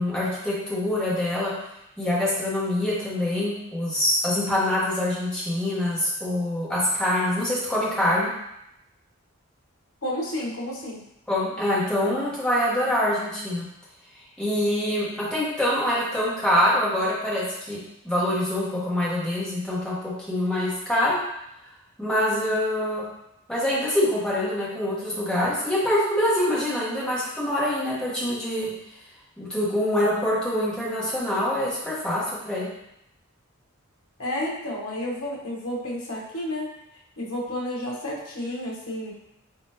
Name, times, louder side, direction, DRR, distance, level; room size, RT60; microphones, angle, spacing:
voice 1, 0.0-1.5 2.0-8.3 11.3-13.7 14.4-17.8 18.0-21.2 22.0-23.0 23.5-28.7 29.4-32.7, left 1 dB, 5° left, -8 dB, 1.1 m, -25 dB
voice 2, 10.0-11.0 34.2-36.7 37.2-39.1, left 1 dB, 75° left, -4 dB, 1.1 m, -31 dB
4.0 x 3.7 x 2.8 m, 0.82 s
head